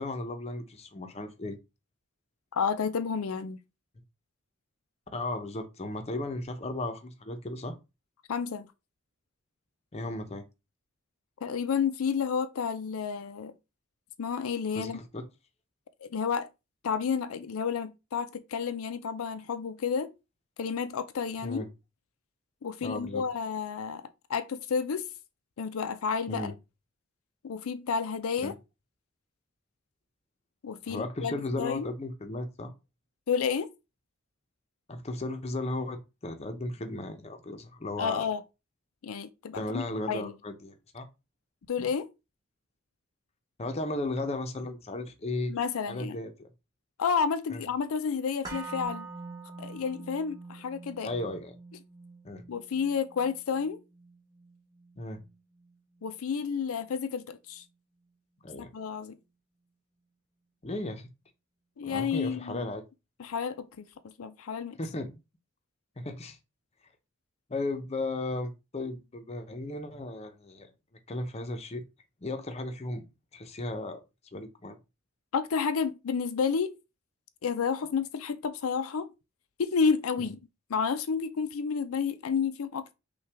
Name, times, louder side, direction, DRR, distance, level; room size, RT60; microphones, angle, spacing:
voice 1, 0.0-1.6 5.1-7.7 9.9-10.4 14.7-15.2 21.4-21.7 22.8-23.2 26.3-26.5 28.4-28.5 30.9-32.7 34.9-38.3 39.5-41.1 41.8-41.9 43.6-45.5 45.9-46.5 47.5-47.6 51.0-51.5 52.2-52.4 55.0-55.2 58.4-58.7 60.6-61.1 61.9-62.8 64.8-65.2 66.0-66.4 67.5-70.7 71.1-71.8 72.2-73.1 73.3-74.0 74.3-74.8 80.2-80.3, left 2 dB, 30° left, 0.6 m, -35 dB
voice 2, 2.5-3.6 8.3-8.7 11.4-13.5 14.2-15.0 16.0-16.5 16.8-20.1 20.6-21.7 22.6-24.0 24.3-25.1 25.6-26.5 27.4-28.5 30.6-31.9 33.3-33.7 38.0-38.4 39.0-40.3 41.7-42.1 45.5-46.2 47.0-49.1 49.6-51.1 52.5-53.8 56.0-57.6 58.6-59.2 61.8-62.7 63.2-63.9 64.2-64.8 75.3-76.7 77.4-79.1 79.6-80.4 80.7-82.9, left 6 dB, 85° left, 0.5 m, -30 dB
sound 1, 48.4-56.5 56.8-56.9, right 3 dB, 15° right, 1.3 m, -45 dB
5.6 x 2.3 x 3.4 m
head